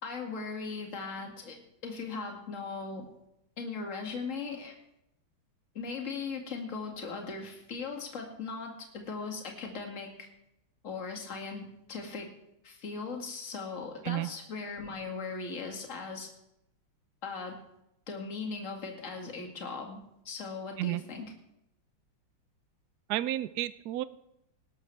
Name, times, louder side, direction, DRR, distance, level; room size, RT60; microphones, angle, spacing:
voice 1, 0.0-3.1 3.6-4.8 5.7-10.3 10.8-12.3 12.6-16.3 17.2-17.6 18.1-21.3, left 4 dB, 40° left, 2 dB, 2.3 m, -39 dB
voice 2, 23.1-24.0, right 14 dB, 70° right, 15 dB, 0.9 m, -31 dB
19.0 x 12.0 x 3.3 m, 0.83 s
omnidirectional pair, 2.2 m